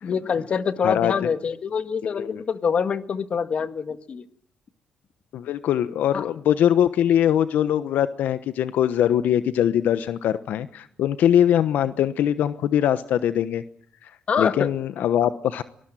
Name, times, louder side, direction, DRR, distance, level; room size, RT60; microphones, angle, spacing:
voice 1, 0.0-4.3 6.1-6.2 14.3-14.7, left 6 dB, 40° left, 11 dB, 1.6 m, -25 dB
voice 2, 2.1-2.4 5.3-13.6 14.0-14.1 14.4-15.6, left 10 dB, 75° left, 13 dB, 1.0 m, -22 dB
24.0 x 19.5 x 9.0 m, 0.68 s
cardioid pair, 135°, 3 cm